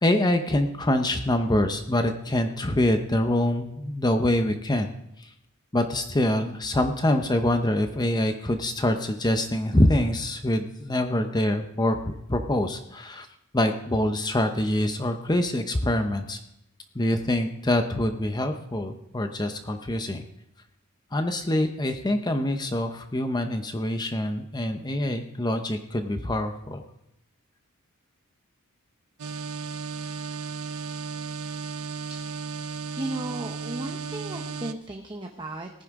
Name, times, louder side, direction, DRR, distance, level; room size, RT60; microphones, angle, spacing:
voice 1, 0.0-4.9 5.2-5.3 5.7-13.3 13.5-16.4 16.9-20.2 21.1-26.8, left 1 dB, 20° left, 6 dB, 0.7 m, -25 dB
sound 1, 29.2-34.7, right 5 dB, 80° right, 0.6 m, -34 dB
voice 2, 32.9-35.8, right 1 dB, 20° right, 2 dB, 0.9 m, -35 dB
18.5 x 9.9 x 3.7 m, 0.79 s
head